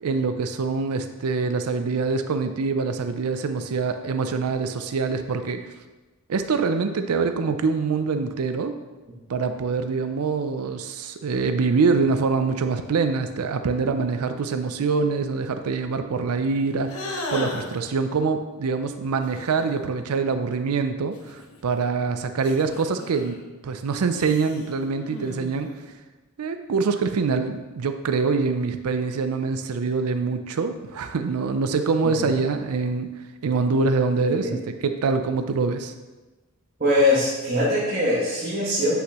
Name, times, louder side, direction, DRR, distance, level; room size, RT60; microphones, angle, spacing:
voice 1, 0.0-5.7 6.3-8.8 9.3-23.4 23.6-25.7 26.4-33.1 33.4-35.9, right 4 dB, 80° right, 8 dB, 0.4 m, -25 dB
sound 1, 16.9-17.9 19.2-19.9 21.1-21.9 22.4-23.4 24.1-25.9, left 1 dB, 80° left, 1.1 m, -36 dB
voice 2, 36.8-39.0, left 1 dB, 40° right, -9 dB, 1.7 m, -22 dB
7.9 x 5.7 x 3.0 m, 1.2 s
head